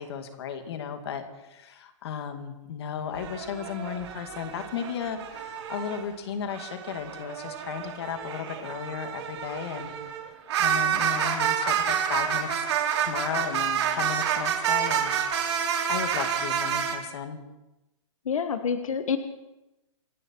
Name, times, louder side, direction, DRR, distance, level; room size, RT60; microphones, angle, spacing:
voice 1, 0.0-9.9 10.6-12.5 13.0-17.4, left 8 dB, 50° left, 7 dB, 2.2 m, -35 dB
sound 1, 3.1-6.0 6.4-17.0, right 8 dB, 55° right, 3.5 m, -29 dB
voice 2, 18.3-19.2, left 6 dB, 90° left, 8 dB, 1.4 m, -27 dB
27.0 x 11.5 x 4.6 m, 0.97 s
hypercardioid pair, 165°, 17 cm